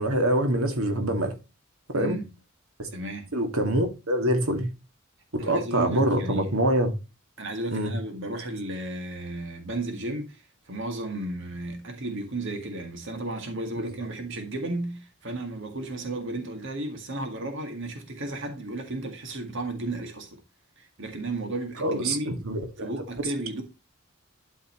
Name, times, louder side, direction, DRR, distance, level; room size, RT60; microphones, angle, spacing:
voice 1, 0.0-1.3 1.9-2.2 2.8-2.9 3.3-4.7 5.3-6.9 7.7-7.9 21.8-22.9, right 1 dB, 90° right, 2.1 m, -25 dB
voice 2, 1.9-2.3 2.9-3.3 5.4-6.6 7.4-20.4 20.8-22.4 22.8-23.6, right 2 dB, 60° right, 1.8 m, -34 dB
12.0 x 5.5 x 3.0 m
head